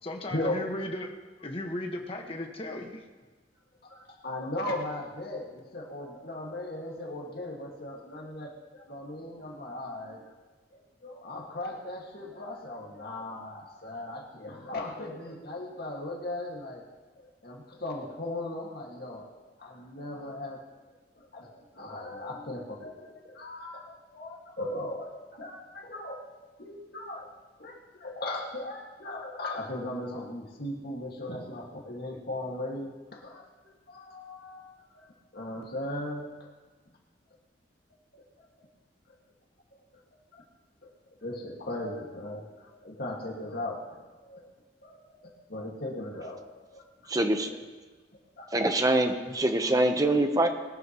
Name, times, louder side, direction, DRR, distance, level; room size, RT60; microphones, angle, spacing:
voice 1, 0.0-1.1 1.4-3.0, left 1 dB, 30° left, 2 dB, 1.6 m, -36 dB
voice 2, 3.8-10.3 10.7-16.8 17.4-19.3 19.6-20.6 21.2-26.2 26.6-27.3 27.6-33.5 33.9-36.3 38.1-38.2 38.6-38.7 39.1-39.2 39.7-39.8 40.3-40.5 40.8-40.9 41.2-44.4 44.8-46.4 46.7-46.8 47.5-47.6 48.4-48.5, left 1 dB, 60° left, -1 dB, 2.1 m, -38 dB
voice 3, 47.1-47.5 48.5-50.5, right 1 dB, 20° right, 6 dB, 1.0 m, -24 dB
20.5 x 13.0 x 3.1 m, 1.3 s
head